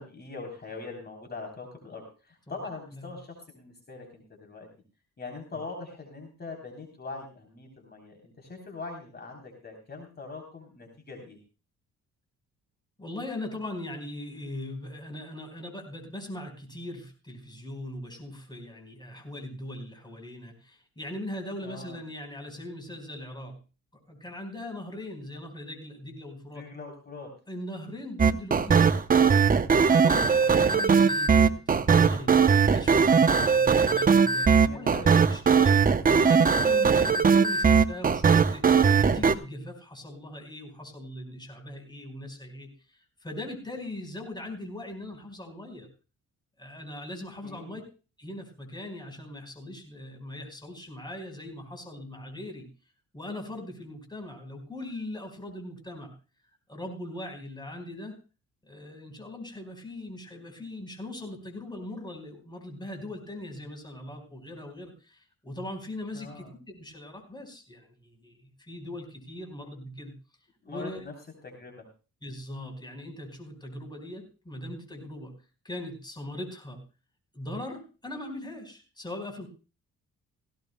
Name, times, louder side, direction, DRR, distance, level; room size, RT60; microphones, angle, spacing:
voice 1, 0.0-4.7 5.2-11.4 21.6-22.0 26.5-27.3 30.3-30.8 34.5-35.1 47.4-47.8 66.1-66.5 70.6-71.1 71.4-71.8, left 3 dB, 35° left, 2 dB, 3.5 m, -42 dB
voice 2, 13.0-23.6 24.1-26.7 27.5-29.0 29.8-32.3 32.6-45.9 46.6-47.8 48.2-52.7 53.1-56.1 56.7-58.1 58.6-70.1 70.7-71.1 72.2-75.3 75.6-76.8 77.3-79.5, left 1 dB, 15° left, 3 dB, 4.5 m, -40 dB
sound 1, 28.2-39.3, right 6 dB, 30° right, 0.7 m, -20 dB
17.0 x 17.0 x 2.2 m, 0.33 s
cardioid pair, 90°, 30 cm